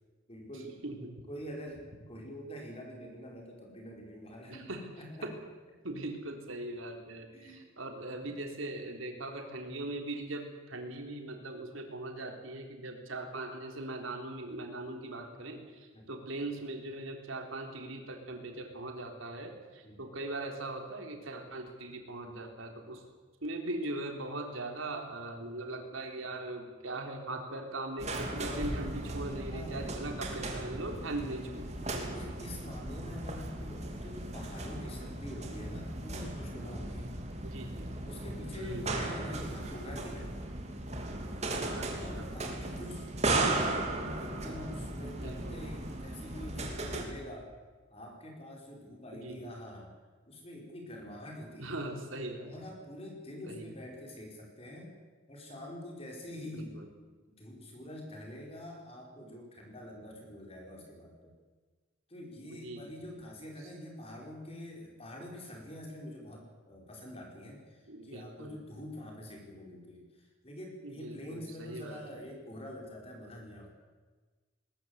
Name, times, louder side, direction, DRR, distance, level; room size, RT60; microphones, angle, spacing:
voice 1, 0.3-0.8 1.3-4.7 5.0-5.3 7.3-7.7 8.2-8.3 15.9-16.1 19.8-20.0 29.5-29.9 32.1-37.2 38.0-40.3 42.0-47.5 47.9-50.0 50.3-51.9 52.4-54.9 55.3-56.8 57.4-61.3 62.1-73.7, left 1 dB, 30° left, 0 dB, 5.3 m, -46 dB
voice 2, 0.8-1.1 4.5-4.9 5.2-5.3 5.8-23.0 23.4-32.1 37.4-37.9 38.6-39.1 41.8-42.3 45.2-45.6 49.1-49.5 51.6-52.5 53.4-53.7 56.4-56.9 62.5-63.1 67.9-68.6 70.8-72.3, right 2 dB, 90° right, 3 dB, 3.8 m, -40 dB
sound 1, 28.0-47.1, right 2 dB, 35° right, 3.1 m, -36 dB
20.5 x 20.0 x 8.3 m, 1.4 s
head